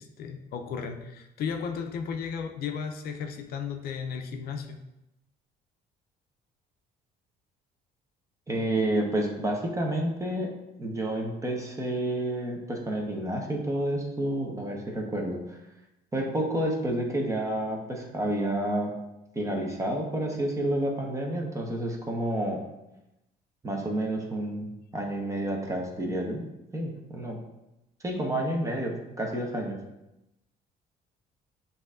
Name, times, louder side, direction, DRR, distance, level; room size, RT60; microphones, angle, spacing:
voice 1, 0.0-4.8, left 6 dB, 65° left, 5 dB, 0.5 m, -34 dB
voice 2, 8.5-10.5 10.8-15.6 16.1-18.9 19.3-22.6 23.6-26.4 26.7-27.4 28.0-29.7, right 1 dB, 20° right, 0 dB, 0.9 m, -29 dB
7.7 x 2.7 x 2.5 m, 0.91 s
cardioid pair, 110°, 17 cm